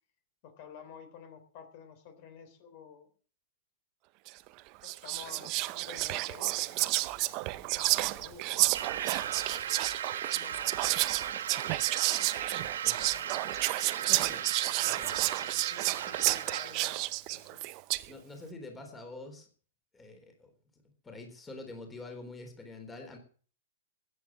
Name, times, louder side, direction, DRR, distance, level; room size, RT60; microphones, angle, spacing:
voice 1, 0.4-3.1 4.8-7.0 7.5-8.8 9.2-9.7 10.1-10.8 11.1-12.3 13.0-13.6 14.6-17.6, left 7 dB, 45° left, 8 dB, 3.6 m, -52 dB
Whispering, 4.3-4.5 4.8-18.1, right 20 dB, 40° right, 0.7 m, -31 dB
sound 1, 7.1-8.2 8.7-10.1 10.5-11.9 12.4-13.8 14.2-14.4, right 10 dB, 55° right, 1.2 m, -56 dB
sound 2, 8.7-17.0, right 9 dB, 80° right, 1.1 m, -37 dB
voice 2, 14.1-14.4 14.9-15.3 18.1-19.5 19.9-20.5 21.0-23.2, left 2 dB, 10° left, 4 dB, 3.9 m, -46 dB
14.0 x 9.9 x 7.4 m, 0.43 s
hypercardioid pair, 140°, 0 cm